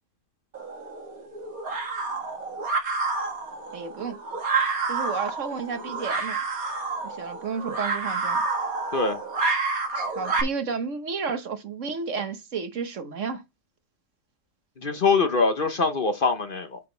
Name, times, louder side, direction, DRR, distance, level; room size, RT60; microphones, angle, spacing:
sound 1, 0.5-10.4, right 4 dB, 80° right, 2.2 m, -29 dB
voice 1, 3.7-4.2 4.9-6.4 7.0-8.4 10.1-13.4, right 5 dB, 60° right, 1.4 m, -31 dB
voice 2, 14.8-16.8, left 4 dB, 45° left, 1.0 m, -23 dB
9.2 x 5.0 x 3.9 m
omnidirectional pair, 1.5 m